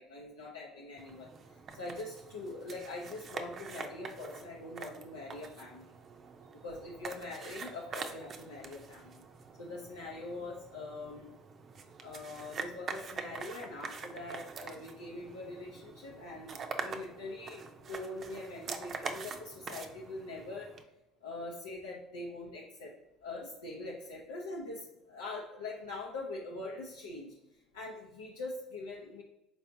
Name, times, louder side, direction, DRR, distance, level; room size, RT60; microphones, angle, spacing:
voice 1, 0.0-5.8 6.6-9.2 9.6-11.3 12.0-20.7 21.2-22.9 23.2-29.2, left 2 dB, 80° left, -5 dB, 0.7 m, -43 dB
sound 1, 1.0-20.8, right 5 dB, 40° right, 0.6 m, -45 dB
4.6 x 4.2 x 2.7 m, 0.91 s
figure-of-eight pair, 60°, 0 cm